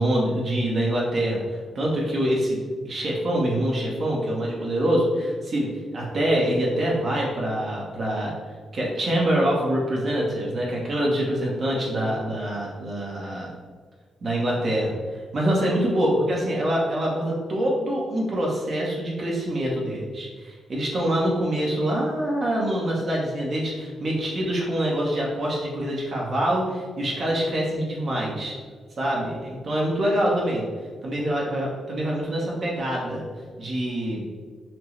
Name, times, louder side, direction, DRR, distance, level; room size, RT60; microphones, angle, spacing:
voice 1, 0.0-2.6 2.8-8.3 8.7-13.5 14.2-28.5 29.0-30.6 31.0-33.2 33.6-34.3, right 1 dB, 40° right, -3 dB, 0.8 m, -25 dB
5.9 x 2.0 x 3.1 m, 1.5 s
wide cardioid pair, 155°, 0 cm